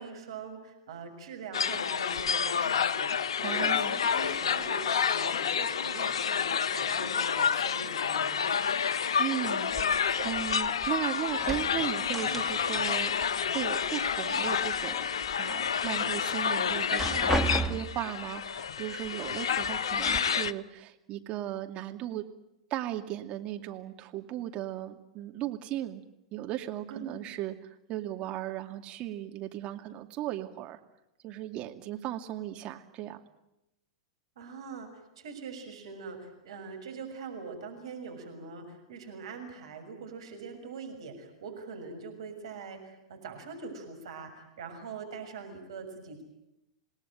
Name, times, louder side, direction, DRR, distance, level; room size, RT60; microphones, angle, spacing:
voice 1, 0.0-8.5 20.0-20.3 26.9-27.3 34.4-46.2, right 4 dB, 65° right, 5 dB, 6.6 m, -43 dB
sound 1, 1.5-20.5, left 7 dB, 70° left, 0.9 m, -29 dB
voice 2, 3.4-4.0 8.8-13.1 13.4-15.1 15.4-17.4 17.7-22.3 22.7-26.0 26.3-27.5 27.9-30.8 31.2-33.2, right 13 dB, 40° right, 5 dB, 2.4 m, -36 dB
sound 2, 9.7-11.0 11.3-12.9 13.2-14.2 14.6-15.3 15.8-15.9 16.7-18.1 19.0-19.1 19.6-20.2, right 1 dB, 5° left, 1.5 m, -34 dB
27.5 x 19.0 x 9.2 m, 0.89 s
figure-of-eight pair, 100°, 3 cm